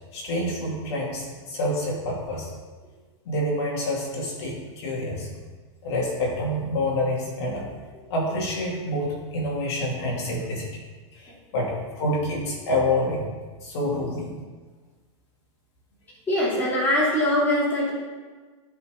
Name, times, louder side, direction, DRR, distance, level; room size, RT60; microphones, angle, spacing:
voice 1, 0.1-2.5 3.2-5.3 5.8-7.7 8.1-10.7 11.1-13.3 13.6-14.4, left 1 dB, 55° left, -3 dB, 2.9 m, -27 dB
voice 2, 16.3-17.9, left 1 dB, 10° left, -7 dB, 2.8 m, -22 dB
14.0 x 5.4 x 3.8 m, 1.4 s
supercardioid pair, 170°, 16 cm